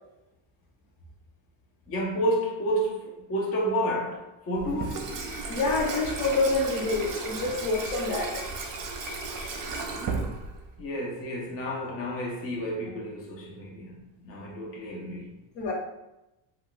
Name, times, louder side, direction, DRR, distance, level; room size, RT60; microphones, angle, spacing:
voice 1, 1.9-5.2 10.8-15.3, equal, 30° left, 0.5 m, -30 dB
Water tap faucet / Sink (filling or washing), 4.6-10.8, right 3 dB, 45° right, 0.6 m, -34 dB
voice 2, 5.5-8.4 15.5-15.7, left 3 dB, 65° left, 1.0 m, -27 dB
2.3 x 2.3 x 3.7 m
cardioid pair, 115°, 48 cm